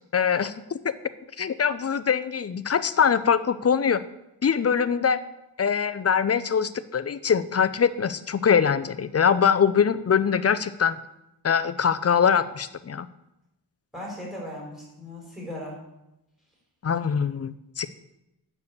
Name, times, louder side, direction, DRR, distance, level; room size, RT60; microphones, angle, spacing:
voice 1, 0.1-0.5 1.4-4.0 4.4-5.2 5.6-11.0 11.4-13.1 16.8-17.9, left 7 dB, 35° left, 13 dB, 0.6 m, -23 dB
voice 2, 13.9-15.8, left 1 dB, ahead, -2 dB, 4.5 m, -37 dB
9.4 x 7.0 x 8.4 m, 0.89 s
wide cardioid pair, 140°, 43 cm